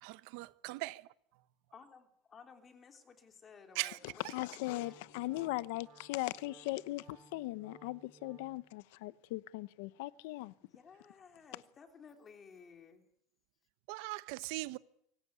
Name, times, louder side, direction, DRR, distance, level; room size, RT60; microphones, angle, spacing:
voice 1, 0.0-1.0 3.8-4.0 13.9-14.8, right 21 dB, 70° right, 1.0 m, -39 dB
voice 2, 1.7-4.9 10.6-13.1, left 6 dB, 25° left, 3.3 m, -57 dB
voice 3, 4.3-10.5, left 19 dB, 80° left, 0.9 m, -39 dB
Wind instrument woodwind instrument, 4.6-8.7, right 5 dB, 35° right, 5.7 m, -60 dB
24.5 x 18.0 x 9.6 m
cardioid pair, 150°, 0 cm